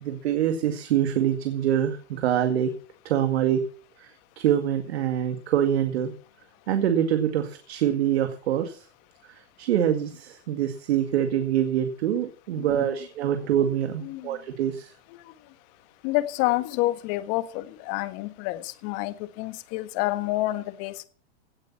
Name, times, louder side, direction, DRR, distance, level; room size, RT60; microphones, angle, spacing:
voice 1, 0.0-2.7 3.0-3.6 4.0-6.1 6.7-8.9 9.2-14.9, right 10 dB, 70° right, 7 dB, 2.1 m, -25 dB
voice 2, 12.6-13.0 14.0-14.4 16.0-20.9, left 17 dB, 45° left, 12 dB, 1.6 m, -28 dB
17.0 x 8.3 x 5.8 m, 0.42 s
hypercardioid pair, 130°, 33 cm